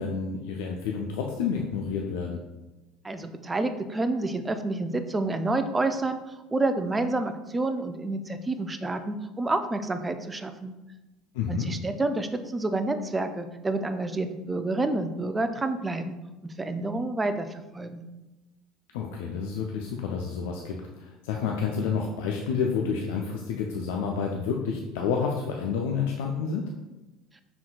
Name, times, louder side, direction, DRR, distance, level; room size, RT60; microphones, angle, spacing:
voice 1, 0.0-2.4 11.3-11.7 18.9-26.7, left 6 dB, 70° left, 1 dB, 0.4 m, -29 dB
voice 2, 3.0-10.7 11.5-16.2 16.4-17.5 17.7-18.0, right 2 dB, 20° right, 9 dB, 0.4 m, -29 dB
5.8 x 3.8 x 2.3 m, 1.1 s
hypercardioid pair, 65°, 0 cm